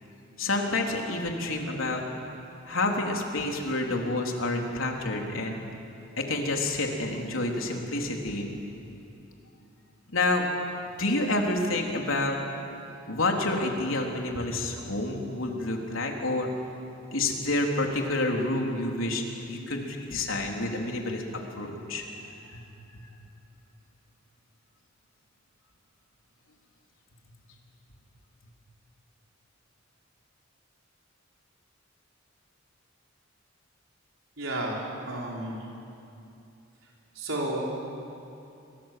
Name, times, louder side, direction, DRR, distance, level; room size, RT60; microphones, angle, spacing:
voice 1, 0.4-2.0 2.7-5.6 6.2-8.5 10.1-10.5 11.0-12.4 13.1-16.5 17.1-21.2 21.6-22.0 22.5-22.6 22.9-23.0, left 2 dB, 85° left, 1 dB, 3.8 m, -28 dB
voice 2, 34.4-34.8 35.1-35.6 37.1-37.7, right 1 dB, 80° right, -3 dB, 4.8 m, -31 dB
29.0 x 24.0 x 7.7 m, 2.7 s
head